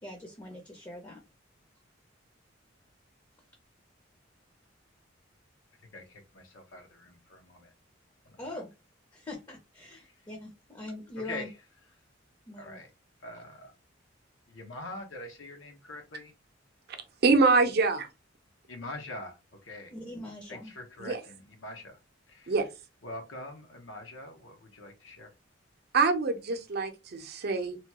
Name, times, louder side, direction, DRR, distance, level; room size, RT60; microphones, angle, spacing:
voice 1, 0.0-1.2 8.4-8.7 9.1-11.5 12.5-12.8 19.9-20.7, left 1 dB, 20° left, 0.5 m, -42 dB
voice 2, 5.9-7.7 8.3-8.4 11.2-11.5 12.6-12.9 13.2-13.7 14.5-16.3 18.7-19.4 19.6-19.9 20.5-22.0 22.3-22.5 23.0-25.3, left 2 dB, 80° left, 0.7 m, -43 dB
voice 3, 17.2-18.1 21.0-21.2 22.5-22.7 25.9-27.8, right 4 dB, 55° right, 0.6 m, -25 dB
2.9 x 2.2 x 2.9 m
head